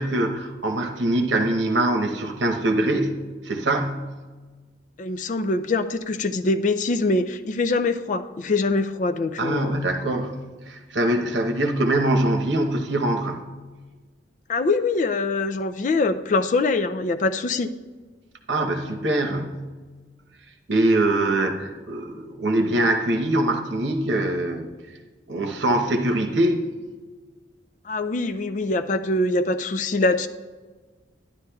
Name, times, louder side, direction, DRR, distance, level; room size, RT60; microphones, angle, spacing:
voice 1, 0.0-3.1 3.4-4.0 9.4-10.3 10.7-13.4 18.5-19.6 20.7-24.7 25.3-26.6, right 1 dB, 75° right, 4 dB, 0.9 m, -23 dB
voice 2, 5.0-9.8 14.5-17.7 27.9-30.3, left 3 dB, 40° left, 11 dB, 0.3 m, -23 dB
12.0 x 10.5 x 2.3 m, 1.4 s
head